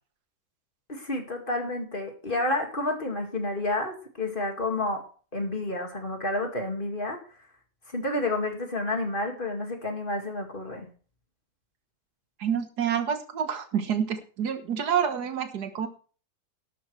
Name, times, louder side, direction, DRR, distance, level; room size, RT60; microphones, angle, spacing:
voice 1, 0.9-5.0 5.3-7.2 7.9-10.9, left 2 dB, 35° left, 3 dB, 2.3 m, -30 dB
voice 2, 12.4-15.9, right 8 dB, 90° right, 8 dB, 1.9 m, -28 dB
12.5 x 12.0 x 3.3 m, 0.39 s
omnidirectional pair, 1.7 m